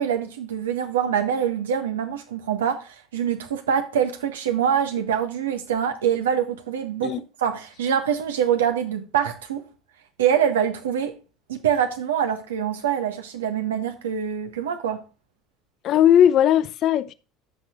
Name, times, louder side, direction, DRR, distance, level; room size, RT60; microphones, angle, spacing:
voice 1, 0.0-9.6 10.2-11.1 11.5-15.0, right 8 dB, 85° right, 1.5 m, -24 dB
voice 2, 15.8-17.1, left 10 dB, 55° left, 0.6 m, -18 dB
14.5 x 6.0 x 2.5 m
hypercardioid pair, 70°, 0 cm